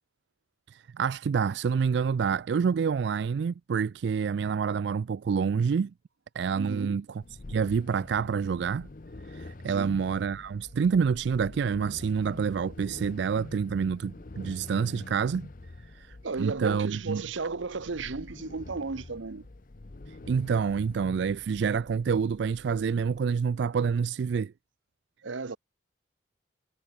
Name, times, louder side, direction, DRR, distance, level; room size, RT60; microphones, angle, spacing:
voice 1, 0.7-5.9 6.3-7.2 7.5-8.9 9.3-15.5 15.9-17.2 20.1-24.5, right 6 dB, 65° right, 0.3 m, -28 dB
voice 2, 6.6-7.0 9.7-10.0 16.2-19.5 25.2-25.6, right 4 dB, 80° right, 0.8 m, -34 dB
sound 1, 7.2-23.2, left 2 dB, 45° left, 0.7 m, -46 dB
head